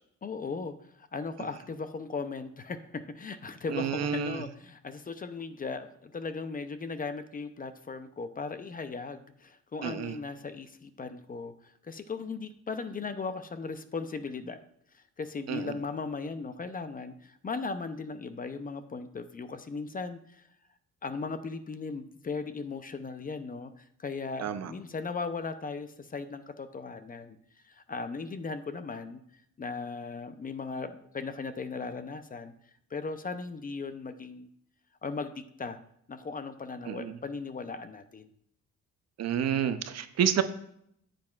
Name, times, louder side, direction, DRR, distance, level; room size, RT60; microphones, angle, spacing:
voice 1, 0.2-14.6 14.9-20.4 21.0-27.4 27.7-29.2 29.6-32.5 32.9-34.5 35.0-35.3 35.6-35.8 36.1-38.3, left 4 dB, 30° left, 11 dB, 0.5 m, -37 dB
voice 2, 3.7-4.4 9.8-10.2 15.5-15.7 24.4-24.7 36.9-37.1 39.2-40.4, right 9 dB, 60° right, 11 dB, 0.6 m, -29 dB
8.9 x 7.6 x 2.4 m, 0.70 s
cardioid pair, 90°, 30 cm